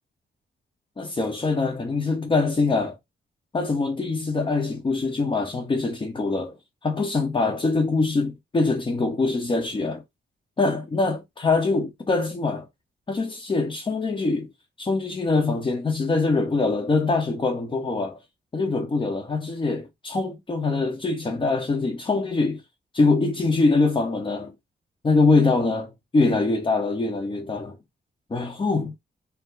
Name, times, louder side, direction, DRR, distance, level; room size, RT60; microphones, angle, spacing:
voice 1, 1.0-2.9 3.5-6.6 6.8-10.0 10.6-12.7 13.1-14.5 14.8-18.2 18.5-22.6 22.9-24.5 25.0-27.8 28.3-28.9, left 3 dB, 25° left, 0.8 m, -23 dB
4.6 x 2.1 x 3.9 m
wide cardioid pair, 145°, 19 cm